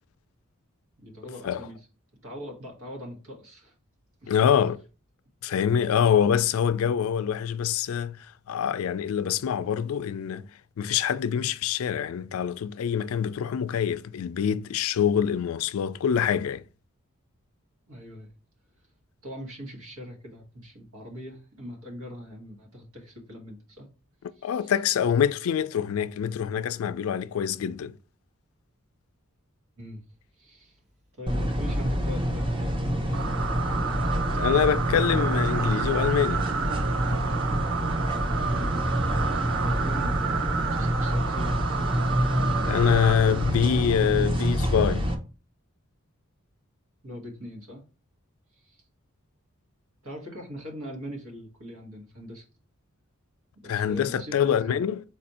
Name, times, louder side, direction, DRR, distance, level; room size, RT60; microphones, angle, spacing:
voice 1, 1.0-1.8 2.2-3.7 4.2-4.4 17.9-18.3 19.2-23.9 24.3-24.7 29.8-30.0 30.4-30.8 31.1-33.2 34.1-34.5 38.5-38.9 39.6-40.5 40.8-41.6 47.0-47.8 48.6-48.8 50.0-52.5 53.6-54.8, equal, 80° right, 1.5 m, -41 dB
voice 2, 4.3-4.8 5.4-8.2 8.5-10.5 10.8-16.6 24.4-27.9 34.4-36.5 42.7-45.1 53.7-55.0, left 8 dB, 75° left, 0.3 m, -25 dB
sound 1, 31.3-45.1, equal, 25° right, 0.7 m, -27 dB
sound 2, 33.1-43.9, right 6 dB, 60° right, 0.4 m, -31 dB
4.2 x 2.6 x 4.1 m
head